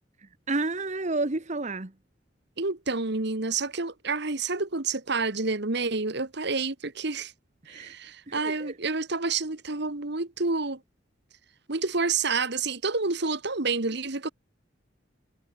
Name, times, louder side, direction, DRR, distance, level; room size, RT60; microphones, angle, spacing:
voice 1, 0.5-1.9 7.7-7.9 8.3-8.7, right 2 dB, 40° right, 1.3 m, -30 dB
voice 2, 2.6-7.3 7.7-10.8 11.7-14.3, right 4 dB, 60° right, 1.7 m, -29 dB
head